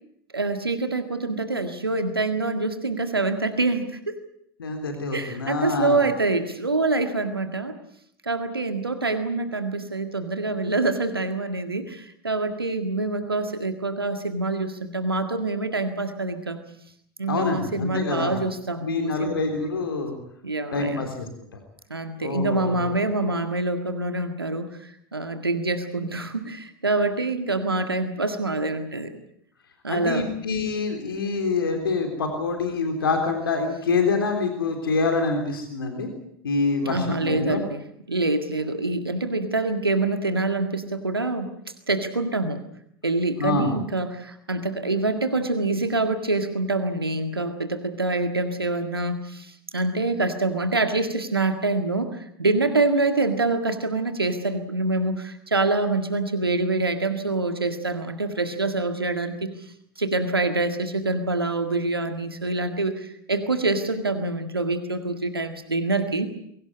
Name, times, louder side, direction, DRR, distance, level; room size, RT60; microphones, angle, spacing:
voice 1, 0.3-4.2 5.1-7.8 8.2-16.6 17.2-19.3 20.4-21.1 21.9-29.1 29.8-30.3 36.8-37.8 38.1-41.5 41.9-42.6 43.0-59.5 60.0-66.3, right 2 dB, 85° right, 8 dB, 1.8 m, -26 dB
voice 2, 4.6-6.0 17.3-18.4 18.8-20.2 20.7-21.3 22.2-22.9 29.9-36.1 36.4-37.6 43.4-43.7, left 4 dB, 75° left, 5 dB, 3.6 m, -26 dB
23.5 x 17.5 x 9.6 m, 0.69 s
figure-of-eight pair, 80°, 12 cm